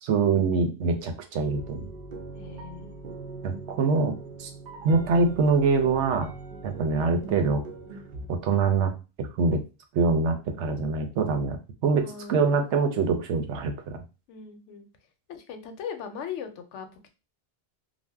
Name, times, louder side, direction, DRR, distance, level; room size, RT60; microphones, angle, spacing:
voice 1, 0.0-1.8 3.4-4.1 4.4-4.5 4.8-6.3 6.6-7.6 8.3-8.9 9.2-9.6 9.9-14.0, right 4 dB, 80° right, 5 dB, 0.9 m, -24 dB
sound 1, 1.5-8.3, right 3 dB, 55° right, 0.6 m, -41 dB
voice 2, 2.3-3.1 12.0-12.6 14.3-14.9 15.3-17.1, left 7 dB, 80° left, 7 dB, 0.9 m, -39 dB
2.5 x 2.1 x 3.3 m, 0.30 s
omnidirectional pair, 1.2 m